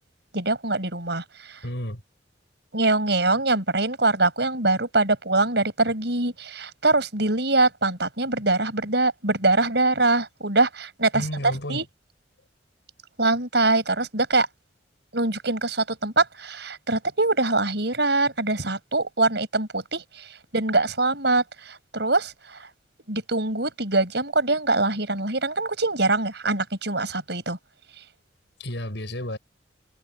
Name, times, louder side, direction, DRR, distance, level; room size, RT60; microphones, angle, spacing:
voice 1, 0.3-1.6 2.7-11.3 11.7-11.8 13.2-14.5 15.1-20.2 20.5-22.7 23.1-27.6, right 2 dB, 60° right, 7.5 m, -23 dB
voice 2, 1.6-2.0 11.1-11.9 28.6-29.4, left 1 dB, 65° left, 7.6 m, -31 dB
head